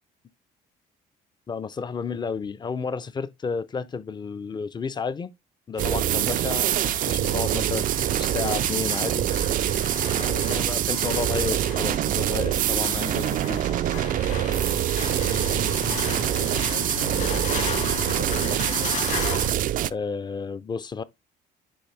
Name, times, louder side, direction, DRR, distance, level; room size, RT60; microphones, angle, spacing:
voice 1, 1.5-5.3 5.7-9.3 10.2-13.6 19.9-21.0, left 5 dB, 25° left, 0.6 m, -32 dB
sound 1, 5.7-19.5, left 6 dB, 45° left, 1.7 m, -36 dB
sound 2, 5.8-19.9, right 12 dB, 55° right, 0.4 m, -25 dB
voice 2, 10.1-10.7 15.1-19.4, left 9 dB, 80° left, 0.9 m, -40 dB
10.0 x 3.4 x 3.3 m
cardioid pair, 110°, 17 cm